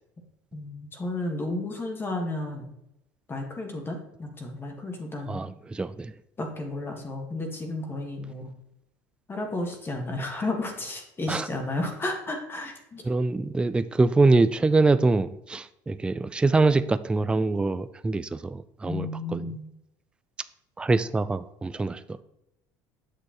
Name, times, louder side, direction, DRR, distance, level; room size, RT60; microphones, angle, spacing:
voice 1, 0.5-2.7 3.3-5.4 6.4-8.5 9.3-13.0 18.8-19.7, left 2 dB, 25° left, 1.6 m, -32 dB
voice 2, 5.3-6.1 11.3-11.5 13.0-19.5 20.8-22.2, right 3 dB, 10° right, 0.3 m, -24 dB
7.8 x 6.4 x 3.0 m
supercardioid pair, 100°, 9 cm